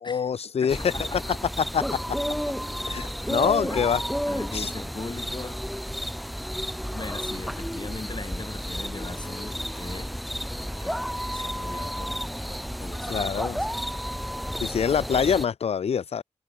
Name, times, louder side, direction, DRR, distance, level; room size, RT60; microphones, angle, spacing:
voice 1, 0.0-0.9 1.7-2.0 2.8-4.0 4.5-4.7 13.1-13.6 14.6-16.2, left 7 dB, 60° left, 0.5 m, -25 dB
voice 2, 0.6-1.4 2.8-3.9 4.3-5.6 6.9-10.5 10.8-14.0, left 3 dB, 40° left, 4.2 m, -40 dB
sound 1, 0.7-15.5, equal, ahead, 3.5 m, -31 dB
cardioid pair, 45°, 12 cm